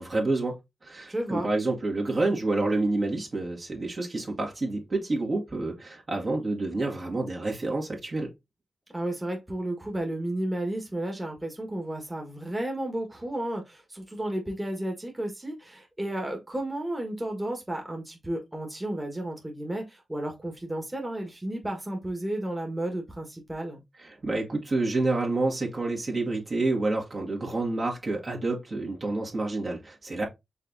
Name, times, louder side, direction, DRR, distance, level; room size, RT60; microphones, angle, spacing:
voice 1, 0.0-8.3 24.0-30.2, right 2 dB, 50° right, 1.9 m, -28 dB
voice 2, 1.1-1.5 8.9-23.8, right 1 dB, 20° right, 1.6 m, -32 dB
5.5 x 3.5 x 2.7 m
cardioid pair, 45°, 0 cm